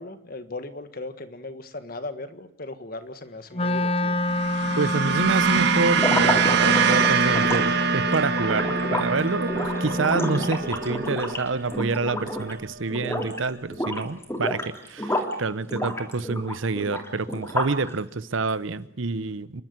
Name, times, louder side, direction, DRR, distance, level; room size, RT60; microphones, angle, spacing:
voice 1, 0.0-4.2, left 2 dB, 45° left, 1.6 m, -37 dB
Wind instrument woodwind instrument, 3.5-10.7, left 1 dB, 30° left, 1.0 m, -28 dB
sound 1, 4.2-12.7, right 6 dB, 55° right, 1.7 m, -25 dB
voice 2, 4.8-19.6, right 3 dB, 75° right, 0.9 m, -27 dB
sound 2, 5.9-12.6 12.9-13.4 13.7-15.4 15.7-17.9, left 1 dB, 15° left, 3.2 m, -30 dB
28.5 x 12.0 x 9.4 m
head